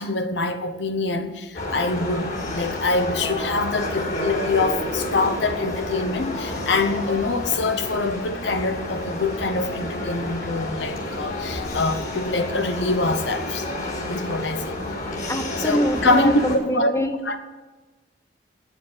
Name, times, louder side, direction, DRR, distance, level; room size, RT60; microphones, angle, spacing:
voice 1, 0.0-13.7 14.1-14.8 15.6-16.9 17.3-17.4, left 3 dB, 70° left, 8 dB, 1.0 m, -24 dB
sound 1, 1.5-16.6, left 1 dB, 50° left, 3.8 m, -30 dB
voice 2, 15.3-17.2, left 1 dB, 15° left, 7 dB, 0.9 m, -25 dB
9.5 x 8.4 x 7.4 m, 1.2 s
head